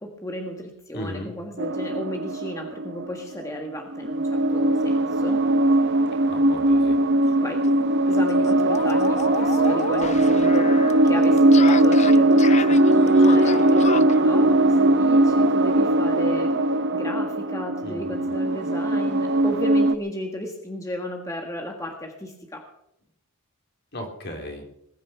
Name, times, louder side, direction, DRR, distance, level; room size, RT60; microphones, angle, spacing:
voice 1, 0.0-5.4 7.4-7.6 8.1-10.7 11.0-22.7, equal, 15° left, 2 dB, 1.6 m, -34 dB
voice 2, 0.9-1.3 6.3-7.0 17.8-18.3 23.9-24.7, left 1 dB, 50° left, 2 dB, 3.6 m, -36 dB
sound 1, 1.6-3.5 3.9-20.0, right 1 dB, 50° right, 0.7 m, -19 dB
sound 2, 7.2-7.3 7.6-7.7 8.1-14.2, left 6 dB, 30° left, 0.5 m, -33 dB
20.5 x 9.9 x 6.0 m, 0.77 s
head